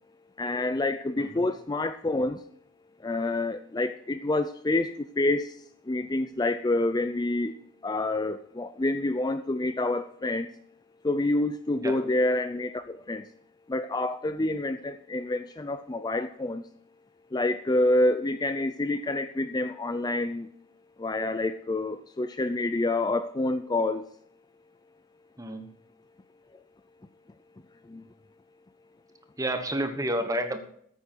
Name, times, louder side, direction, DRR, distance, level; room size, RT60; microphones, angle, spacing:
voice 1, 0.4-2.4 3.0-5.5 5.9-7.5 7.8-10.5 11.0-13.2 13.7-16.6 17.3-20.5 21.0-24.0, left 2 dB, 20° left, 0.4 m, -27 dB
voice 2, 25.4-25.7 29.4-30.6, right 1 dB, 15° right, 1.3 m, -30 dB
14.0 x 8.3 x 4.6 m
head